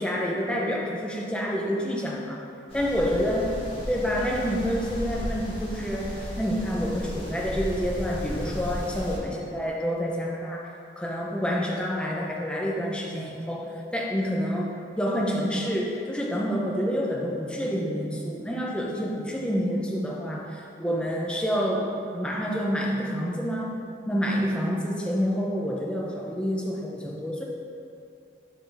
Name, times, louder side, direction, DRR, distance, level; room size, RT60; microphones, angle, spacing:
voice 1, 0.0-2.4 2.7-3.5 3.9-23.7 24.1-27.4, equal, 5° left, -3 dB, 0.6 m, -28 dB
sound 1, 2.7-9.2, equal, 30° left, 1.4 m, -35 dB
10.5 x 4.4 x 3.4 m, 2.6 s
head